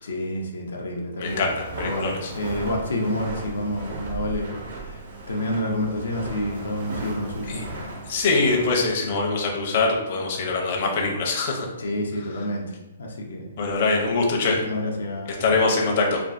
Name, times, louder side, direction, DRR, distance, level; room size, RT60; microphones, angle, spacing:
voice 1, 0.0-1.5 1.8-5.0 5.3-7.9 11.8-12.7 13.0-13.5 14.6-15.7, left 1 dB, 85° left, 0 dB, 0.5 m, -29 dB
voice 2, 1.2-2.3 7.4-7.6 8.1-11.7 13.6-14.6 15.4-16.2, left 3 dB, 45° left, -1 dB, 0.6 m, -23 dB
Walk footsteps, 1.3-9.0, right 2 dB, 75° right, 0.7 m, -36 dB
3.3 x 2.3 x 2.5 m, 0.99 s
hypercardioid pair, 155°, 0 cm